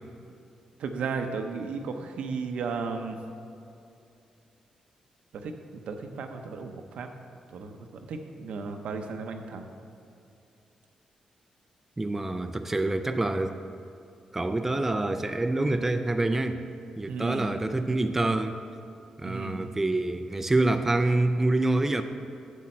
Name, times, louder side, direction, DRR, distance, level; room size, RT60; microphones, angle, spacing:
voice 1, 0.8-3.2 5.3-7.1 7.5-9.7 17.1-17.8 19.2-19.7, right 4 dB, 75° right, 5 dB, 0.7 m, -35 dB
voice 2, 12.0-13.6 14.3-16.6 17.0-18.6 19.2-22.0, right 2 dB, 15° right, 7 dB, 0.4 m, -26 dB
8.0 x 7.4 x 4.4 m, 2.6 s
cardioid pair, 110°, 2 cm